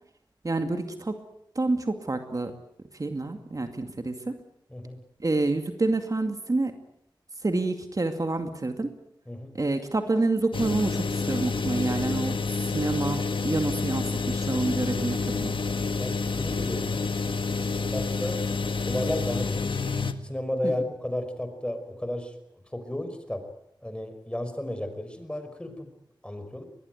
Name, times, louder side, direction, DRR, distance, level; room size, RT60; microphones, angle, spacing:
voice 1, 0.4-1.1 1.6-2.5 3.0-4.4 5.2-6.7 7.4-8.9 9.5-12.4 12.7-15.6 20.6-20.7, right 2 dB, 45° right, 6 dB, 2.3 m, -28 dB
sound 1, 10.5-20.1, left 4 dB, 80° left, 1.7 m, -28 dB
voice 2, 16.0-17.2 17.9-18.5 18.8-19.7 20.2-22.3 22.7-23.5 23.8-25.9 26.2-26.6, left 1 dB, 10° left, 8 dB, 5.3 m, -33 dB
23.0 x 20.5 x 9.4 m, 0.76 s
wide cardioid pair, 65°, 8 cm